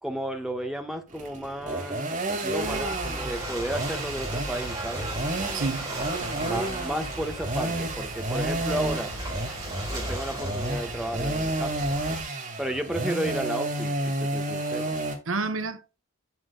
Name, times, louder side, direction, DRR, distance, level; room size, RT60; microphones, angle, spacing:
voice 1, 0.0-2.1 2.4-5.1 6.5-9.2 9.9-11.8 12.6-14.9, right 1 dB, ahead, 1.5 m, -33 dB
sound 1, 1.1-15.2, right 2 dB, 40° right, 2.3 m, -31 dB
Ocean / Boat Water vehicle, 2.6-12.2, right 1 dB, 15° right, 4.3 m, -36 dB
voice 2, 5.5-6.6 15.3-16.0, right 3 dB, 70° right, 1.0 m, -31 dB
13.0 x 6.4 x 2.4 m
head